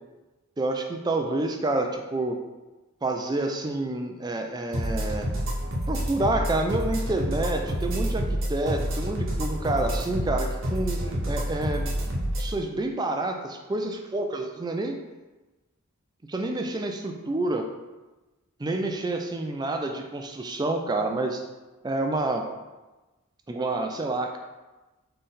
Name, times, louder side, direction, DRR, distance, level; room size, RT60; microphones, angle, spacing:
voice 1, 0.6-2.4 3.0-5.3 5.9-8.2 8.5-15.0 16.3-17.6 18.6-21.4 21.8-22.4 23.5-24.4, right 2 dB, 20° right, 4 dB, 0.3 m, -28 dB
sound 1, 4.7-12.5, equal, 65° right, 0.9 m, -28 dB
3.7 x 3.2 x 4.1 m, 1.1 s
head